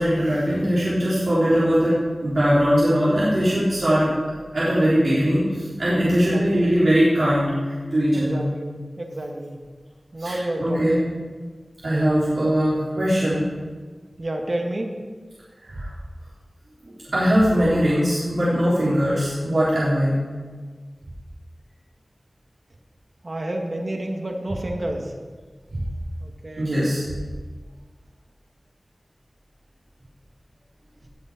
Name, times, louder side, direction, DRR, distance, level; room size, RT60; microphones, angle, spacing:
voice 1, 0.0-4.1 4.5-8.4 10.2-11.0 11.8-13.5 15.6-15.9 16.8-20.2 25.7-25.8 26.6-27.0, equal, 70° right, -10 dB, 3.7 m, -21 dB
voice 2, 6.1-6.7 8.1-9.6 10.1-11.0 11.9-12.1 14.2-15.0 23.2-25.2 26.2-26.8, right 1 dB, 50° right, 2 dB, 1.7 m, -30 dB
19.0 x 6.5 x 5.1 m, 1.5 s
wide cardioid pair, 75°, 0 cm